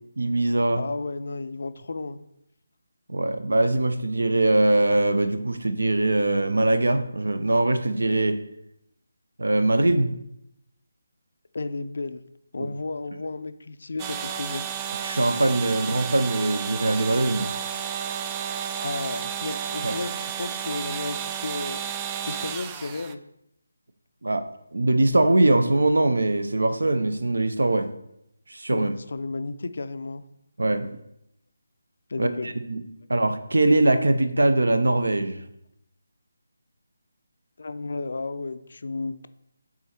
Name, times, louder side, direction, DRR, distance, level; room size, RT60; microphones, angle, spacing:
voice 1, 0.2-0.8 3.1-8.4 9.4-10.1 12.6-12.7 15.0-17.5 19.8-19.9 24.2-27.9 28.5-28.9 30.6-30.9 32.2-32.8 33.1-35.4, right 2 dB, 65° right, 10 dB, 0.7 m, -22 dB
voice 2, 0.8-2.2 11.5-12.2 12.5-14.6 18.8-21.9 22.3-23.2 28.7-30.2 32.1-32.5 37.6-39.3, left 3 dB, 55° left, 11 dB, 0.5 m, -33 dB
sound 1, 14.0-23.1, right 8 dB, 15° right, 0.3 m, -32 dB
8.3 x 3.9 x 4.4 m, 0.79 s
figure-of-eight pair, 150°, 0 cm